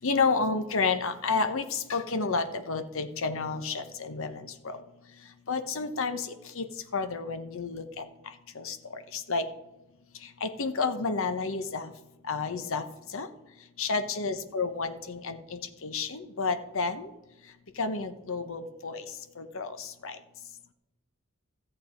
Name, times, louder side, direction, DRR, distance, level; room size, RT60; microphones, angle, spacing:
voice 1, 0.0-4.3 4.6-4.8 5.5-6.2 6.6-6.7 6.9-8.0 8.6-8.8 9.1-9.4 10.4-11.9 12.3-12.8 13.1-13.3 13.8-17.1 17.8-19.0 19.4-19.7 20.0-20.2, left 4 dB, 65° left, 9 dB, 1.0 m, -30 dB
14.0 x 7.7 x 5.1 m, 0.97 s
head